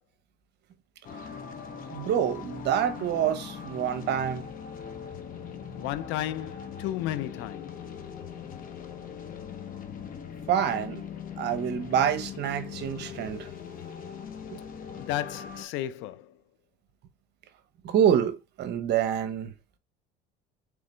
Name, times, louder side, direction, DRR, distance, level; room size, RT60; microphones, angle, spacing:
sound 1, 1.0-15.6, left 7 dB, 40° left, 0.9 m, -40 dB
voice 1, 1.9-4.5 10.5-11.0 11.4-13.5 17.8-19.5, right 9 dB, 55° right, 0.9 m, -26 dB
voice 2, 5.7-7.8 15.0-16.4, left 13 dB, 65° left, 0.5 m, -33 dB
3.8 x 3.5 x 3.2 m
supercardioid pair, 95°, 21 cm